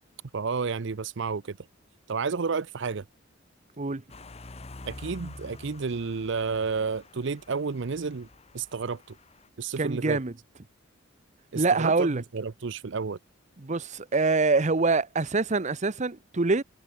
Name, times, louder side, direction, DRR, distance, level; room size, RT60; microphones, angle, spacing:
voice 1, 0.3-1.6 2.1-3.0 4.9-8.3 8.5-9.2 9.6-10.2 11.5-13.2, right 5 dB, 65° right, 0.6 m, -31 dB
sound 1, 4.1-9.5, left 2 dB, 30° left, 1.1 m, -47 dB
voice 2, 9.8-10.3 11.5-12.2 13.6-16.6, right 3 dB, 35° right, 0.9 m, -25 dB
head